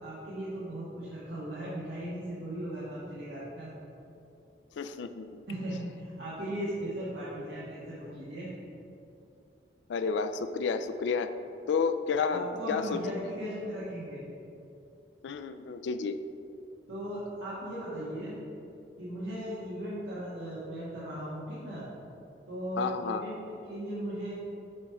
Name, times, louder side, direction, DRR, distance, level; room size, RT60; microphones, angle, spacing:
voice 1, 0.0-3.7 5.5-8.5 12.3-14.2 16.9-18.4 19.0-21.8 22.5-24.3, right 1 dB, 85° right, -9 dB, 1.5 m, -37 dB
voice 2, 4.8-5.4 9.9-11.3 11.7-13.0 15.2-16.2 22.8-23.2, left 5 dB, 85° left, 10 dB, 0.4 m, -31 dB
8.5 x 3.0 x 5.7 m, 2.7 s
head